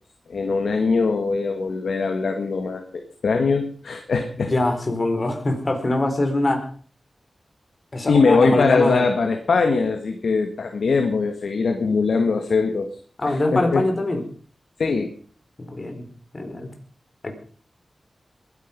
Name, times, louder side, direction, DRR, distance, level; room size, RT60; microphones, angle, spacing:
voice 1, 0.3-4.5 8.1-13.0 13.3-13.9 14.8-15.1, left 4 dB, 90° left, 5 dB, 1.7 m, -21 dB
voice 2, 4.4-6.7 7.9-9.1 13.2-14.2 15.6-16.0 16.3-16.7 17.2-17.3, left 2 dB, 40° left, 5 dB, 4.4 m, -23 dB
21.5 x 10.5 x 5.3 m, 0.44 s
wide cardioid pair, 75°, 0 cm